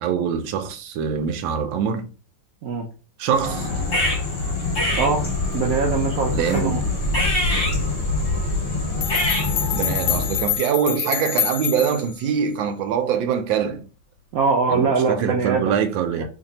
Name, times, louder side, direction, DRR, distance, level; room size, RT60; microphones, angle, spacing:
voice 1, 0.0-2.1 3.2-3.7 6.3-7.0 9.7-13.8 14.7-16.2, right 7 dB, 85° right, 1.3 m, -24 dB
sound 1, 3.3-10.6, left 2 dB, 35° left, 1.4 m, -24 dB
voice 2, 5.5-6.8 14.3-15.6 16.2-16.3, right 5 dB, 65° right, 0.9 m, -22 dB
sound 2, 9.0-12.2, left 10 dB, 75° left, 1.1 m, -26 dB
3.2 x 2.6 x 4.0 m
omnidirectional pair, 2.0 m